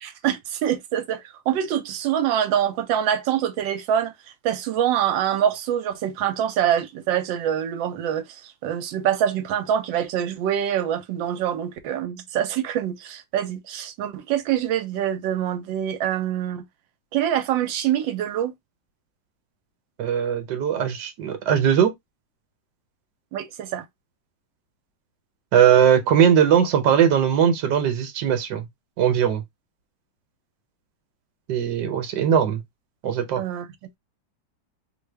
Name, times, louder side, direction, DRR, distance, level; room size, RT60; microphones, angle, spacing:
voice 1, 0.0-4.1 4.4-16.6 17.1-18.5 23.3-23.8 33.4-33.7, right 10 dB, 85° right, 1.3 m, -25 dB
voice 2, 20.0-21.9 25.5-28.7 29.0-29.4 31.5-32.6 33.0-33.4, right 8 dB, 70° right, 1.3 m, -19 dB
3.3 x 2.3 x 3.2 m
omnidirectional pair, 2.0 m